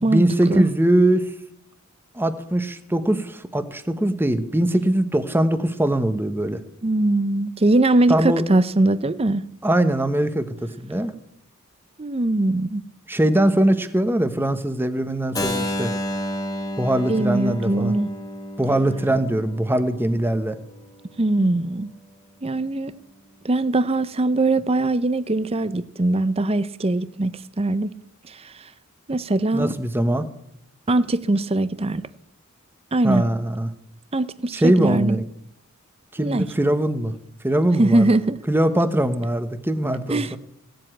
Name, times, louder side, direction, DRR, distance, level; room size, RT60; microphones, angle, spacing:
voice 1, 0.0-1.3 2.1-6.6 8.1-8.4 9.6-11.1 13.1-15.9 16.8-17.9 18.6-20.6 29.5-30.3 33.0-33.7 34.5-35.2 36.1-37.1 37.4-38.1 38.5-40.4, right 1 dB, 10° right, 0.9 m, -21 dB
voice 2, 6.8-9.4 12.0-12.8 17.1-18.1 21.2-21.9 22.4-22.9 23.4-27.9 28.3-28.4 29.1-29.7 30.9-32.0 32.9-33.3 34.1-35.2 36.2-36.5 37.8-38.4 40.1-40.3, right 2 dB, 25° right, 0.6 m, -21 dB
Keyboard (musical), 15.3-21.2, left 1 dB, 15° left, 1.3 m, -31 dB
16.5 x 7.8 x 9.0 m
head